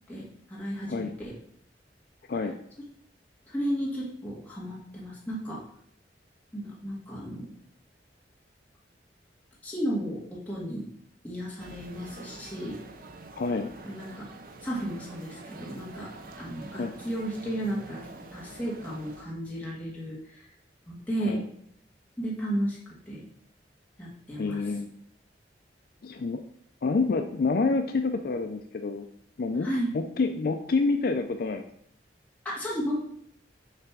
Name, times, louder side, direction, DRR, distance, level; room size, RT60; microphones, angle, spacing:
voice 1, 0.1-1.4 3.5-5.6 6.5-7.5 9.6-10.9 11.2-12.8 13.9-14.3 14.6-16.1 16.4-20.5 20.9-21.4 22.2-23.3 24.0-24.6 29.6-29.9 32.4-33.0, equal, 10° left, -6 dB, 2.0 m, -33 dB
Recording of Busy New York City Street, 11.6-19.3, right 2 dB, 50° right, 0.7 m, -46 dB
voice 2, 13.4-13.7 16.7-16.9 21.2-21.5 24.3-24.9 26.0-26.4 26.8-29.1 29.4-29.7 29.9-31.6, left 3 dB, 55° left, 6 dB, 0.4 m, -28 dB
6.6 x 3.4 x 5.9 m, 0.68 s
head